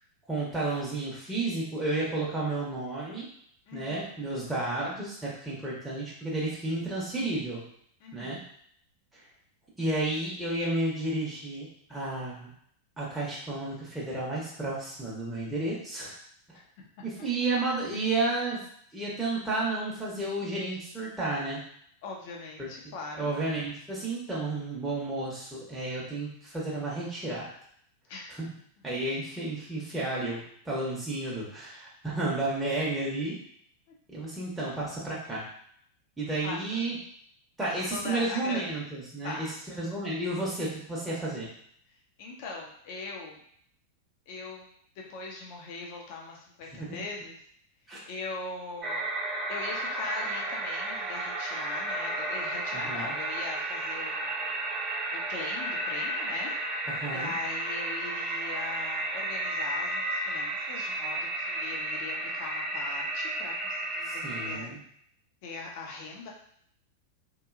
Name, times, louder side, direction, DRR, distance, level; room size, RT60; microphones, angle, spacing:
voice 1, 0.3-3.3 3.7-7.7 8.1-8.4 9.1-9.2 9.8-12.5 13.0-16.2 16.5-16.6 17.0-18.6 18.9-21.6 23.2-27.5 28.4-28.5 28.8-33.4 34.1-35.5 36.2-37.0 37.6-41.5 46.9-47.0 47.9-48.0 52.9-53.1 56.9-57.3 64.0-64.8, right 2 dB, 5° right, -6 dB, 0.8 m, -32 dB
voice 2, 3.7-4.3 8.0-8.4 16.8-16.9 22.0-23.3 28.1-28.4 33.9-34.0 36.4-36.6 37.6-38.6 39.2-39.5 42.2-43.4 44.3-47.4 48.0-49.1 49.5-54.6 55.1-56.6 57.1-64.7 65.4-66.3, left 3 dB, 50° left, -1 dB, 0.7 m, -40 dB
sound 1, 48.8-64.6, right 1 dB, 25° right, 0.4 m, -33 dB
3.0 x 2.6 x 2.4 m, 0.65 s
figure-of-eight pair, 90°, 0 cm